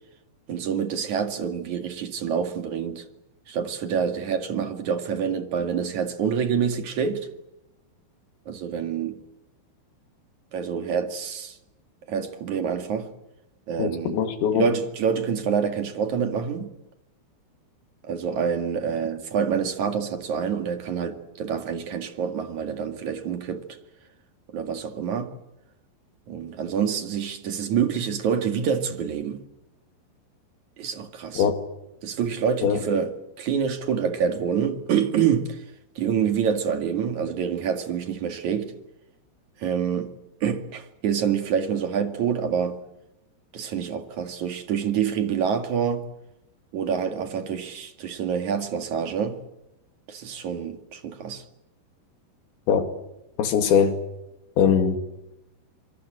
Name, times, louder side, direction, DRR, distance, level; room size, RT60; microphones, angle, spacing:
voice 1, 0.5-3.1 3.5-7.3 8.5-9.2 10.5-11.6 12.1-13.1 13.7-14.2 14.5-16.7 18.0-23.6 24.5-25.3 26.3-29.4 30.8-31.4 32.0-35.6 36.0-38.7 39.6-40.1 40.4-42.8 43.5-46.0 46.7-49.4 50.1-51.4, right 7 dB, 50° right, 2.9 m, -27 dB
voice 2, 13.8-14.7 31.4-31.6 32.6-32.8 52.7-52.9 53.4-54.0 54.6-55.0, left 7 dB, 75° left, 4.7 m, -21 dB
25.5 x 25.0 x 7.8 m
omnidirectional pair, 5.3 m